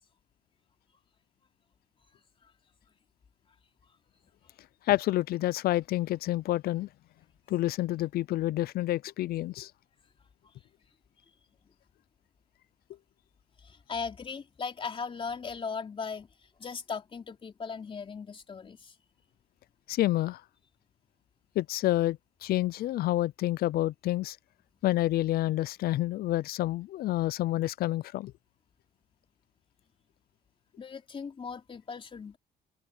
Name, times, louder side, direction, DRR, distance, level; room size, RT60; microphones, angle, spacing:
voice 1, 4.9-6.9 7.5-9.7 19.9-20.4 21.6-24.4 24.8-28.3, left 15 dB, 65° left, 0.5 m, -28 dB
voice 2, 13.6-16.3 16.6-19.0 30.8-32.4, left 5 dB, 30° left, 3.5 m, -38 dB
cardioid pair, 110°, 17 cm